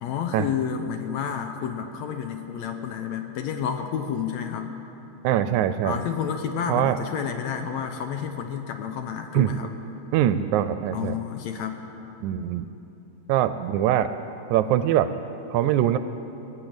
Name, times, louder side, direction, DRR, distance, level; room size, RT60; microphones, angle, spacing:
voice 1, 0.0-4.7 5.8-9.7 10.9-11.8, left 7 dB, 75° left, 6 dB, 1.8 m, -30 dB
voice 2, 5.2-6.0 6.7-7.0 9.3-9.5 10.1-11.1 12.2-12.7 13.3-14.1 14.5-15.1 15.5-16.0, right 11 dB, 80° right, 12 dB, 1.8 m, -22 dB
20.0 x 7.9 x 8.8 m, 3.0 s
omnidirectional pair, 3.6 m